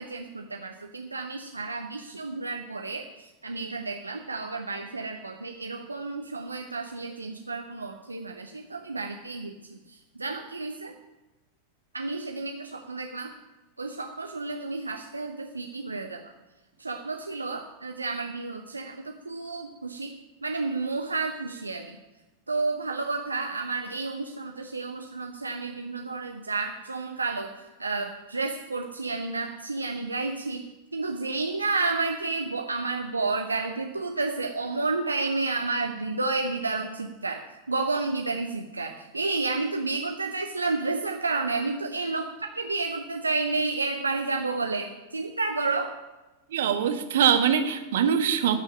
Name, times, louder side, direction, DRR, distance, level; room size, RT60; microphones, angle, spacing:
voice 1, 0.0-10.9 11.9-13.3 13.8-16.3 16.8-20.1 20.4-22.0 22.5-27.5 27.8-45.9, right 3 dB, 80° right, 4 dB, 0.8 m, -31 dB
voice 2, 46.5-48.6, right 8 dB, 60° right, 9 dB, 1.2 m, -23 dB
13.0 x 6.3 x 9.8 m, 1.1 s
figure-of-eight pair, 90°, 0 cm